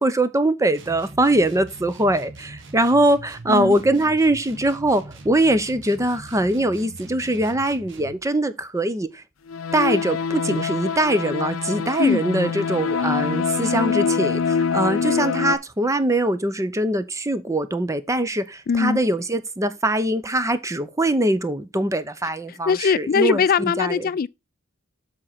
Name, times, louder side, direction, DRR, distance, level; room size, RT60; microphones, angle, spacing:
voice 1, 0.0-9.1 9.7-24.1, right 1 dB, 15° right, 0.7 m, -22 dB
sound 1, 0.7-8.2, right 2 dB, 65° right, 1.6 m, -42 dB
sound 2, 9.5-15.6, left 6 dB, 90° left, 0.6 m, -24 dB
voice 2, 18.7-19.0 22.5-24.3, left 6 dB, 45° left, 0.4 m, -21 dB
7.5 x 4.4 x 5.7 m
head